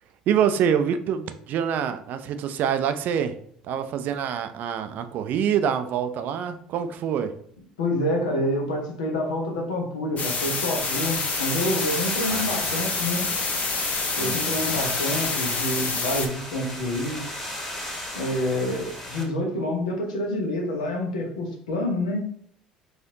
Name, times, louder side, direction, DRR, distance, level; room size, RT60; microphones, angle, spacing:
voice 1, 0.3-3.4 3.6-7.3 12.3-12.9 14.2-14.8, right 8 dB, 50° right, 9 dB, 0.4 m, -26 dB
voice 2, 7.8-13.3 14.1-17.2 18.1-22.2, left 1 dB, 75° left, 1 dB, 0.8 m, -27 dB
sound 1, 10.2-16.3, left 4 dB, 40° left, 0.8 m, -27 dB
sound 2, 10.8-19.2, left 1 dB, 15° left, 1.5 m, -36 dB
4.3 x 2.5 x 2.7 m, 0.64 s
figure-of-eight pair, 60°, 4 cm